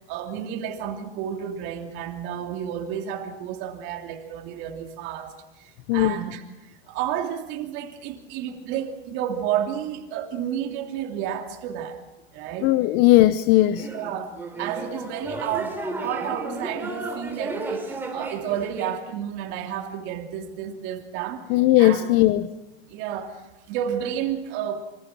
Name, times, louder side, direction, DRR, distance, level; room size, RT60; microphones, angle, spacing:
voice 1, 0.1-5.3 5.9-6.4 6.9-12.0 12.3-12.7 13.9-21.4 21.8-22.1 22.9-24.9, right 9 dB, 40° right, 4 dB, 3.0 m, -31 dB
voice 2, 5.9-6.2 12.6-13.9 21.5-22.5, left 16 dB, 35° left, 14 dB, 0.7 m, -18 dB
sound 1, 13.6-19.0, right 2 dB, 5° right, 3.3 m, -33 dB
27.0 x 24.5 x 6.0 m, 0.98 s
supercardioid pair, 150°, 30 cm